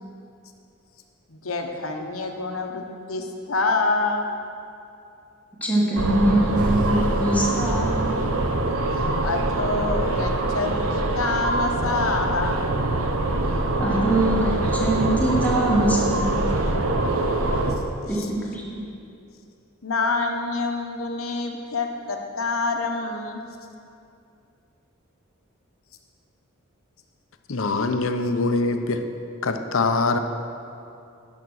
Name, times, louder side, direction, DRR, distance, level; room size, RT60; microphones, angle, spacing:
voice 1, 1.3-4.3 9.2-12.6 18.0-18.3 19.8-23.5, left 3 dB, 85° left, 3 dB, 1.0 m, -27 dB
voice 2, 5.6-8.1 13.8-16.5 18.1-18.8, right 1 dB, 10° left, -4 dB, 1.3 m, -23 dB
sound 1, 6.0-17.8, right 2 dB, 80° right, 0.8 m, -24 dB
sound 2, 6.5-12.8, right 2 dB, 45° right, 0.6 m, -35 dB
voice 3, 27.5-29.0 29.4-30.2, left 3 dB, 70° left, 7 dB, 0.7 m, -23 dB
11.0 x 5.7 x 6.4 m, 2.6 s
head